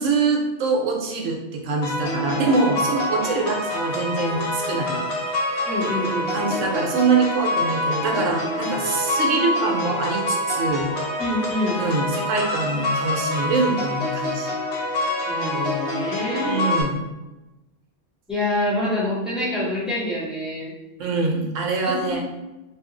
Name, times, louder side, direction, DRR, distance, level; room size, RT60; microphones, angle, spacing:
voice 1, 0.0-5.0 6.3-10.9 11.8-14.5 16.4-16.9 21.0-22.2, right 3 dB, 80° right, 1 dB, 1.0 m, -24 dB
sound 1, 1.8-16.8, left 1 dB, 65° left, 1.0 m, -26 dB
voice 2, 5.7-6.3 11.2-11.8 15.3-16.7 18.3-20.7 21.9-22.2, left 1 dB, ahead, -8 dB, 0.9 m, -26 dB
2.7 x 2.4 x 3.7 m, 1.0 s
omnidirectional pair, 1.3 m